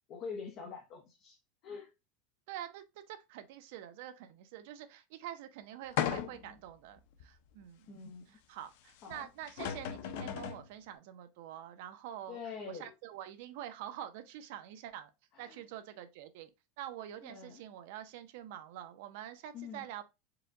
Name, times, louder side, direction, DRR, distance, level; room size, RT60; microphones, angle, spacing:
voice 1, 0.1-1.4 1.6-1.9 7.9-8.4 9.0-9.3 12.3-12.9 15.3-15.6 17.2-17.6 19.5-19.8, left 5 dB, 35° left, 0.8 m, -45 dB
voice 2, 2.5-7.9 8.3-12.4 12.7-15.1 15.4-16.5 16.8-20.0, right 11 dB, 60° right, 0.6 m, -46 dB
sound 1, 6.0-6.6 7.2-7.3 9.1-9.2 9.5-10.7, left 10 dB, 60° left, 0.5 m, -36 dB
4.8 x 2.3 x 3.6 m
supercardioid pair, 165°, 0 cm